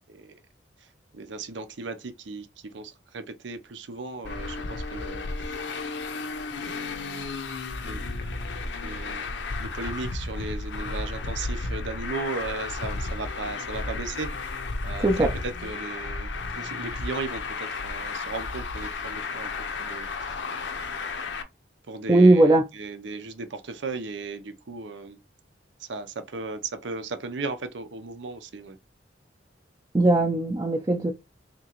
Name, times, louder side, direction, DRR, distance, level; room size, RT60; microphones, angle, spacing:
voice 1, 1.1-5.6 6.6-7.3 7.8-8.2 8.8-9.3 9.6-14.5 14.8-15.1 15.4-20.4 21.9-22.4 22.7-25.2 25.8-28.8, right 3 dB, 80° right, 0.6 m, -36 dB
Traffic noise roadway noise, 4.2-21.4, left 3 dB, 75° left, 0.6 m, -33 dB
voice 2, 15.0-15.3 22.1-22.6 29.9-31.1, right 2 dB, 20° right, 0.5 m, -19 dB
3.6 x 2.9 x 2.9 m
head